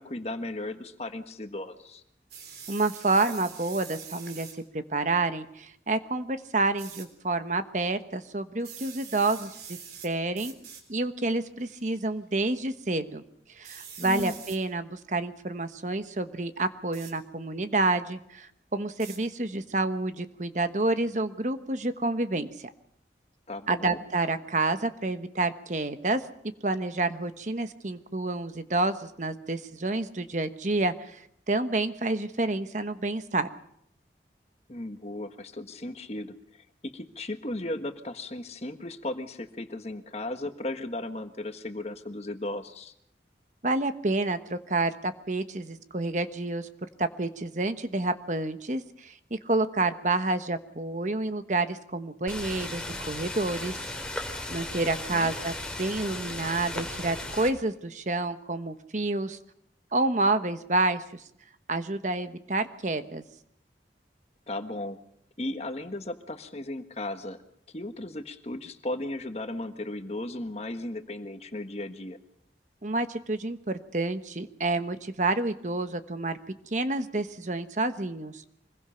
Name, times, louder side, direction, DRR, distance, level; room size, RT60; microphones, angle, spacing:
voice 1, 0.0-2.0 14.0-14.4 23.5-24.0 34.7-42.9 55.1-55.3 64.5-65.0 65.4-67.4 67.7-72.2, left 1 dB, 35° left, 8 dB, 1.5 m, -36 dB
sound 1, 2.3-4.6 6.8-7.1 8.6-10.1 10.4-10.8 11.6-12.0 13.6-14.6 16.9-17.2 19.0-19.2, right 7 dB, 60° right, 3.9 m, -44 dB
voice 2, 2.7-4.5 4.7-9.8 10.0-10.5 10.9-13.2 13.6-22.7 23.7-26.2 26.6-33.5 43.6-46.7 47.0-53.7 54.1-54.2 54.5-59.4 59.9-61.2 61.7-63.2 72.8-76.4 76.7-78.5, right 2 dB, 45° right, 9 dB, 1.2 m, -29 dB
sound 2, 52.3-57.5, left 1 dB, 5° left, 2.8 m, -36 dB
25.0 x 21.0 x 5.8 m, 0.71 s
head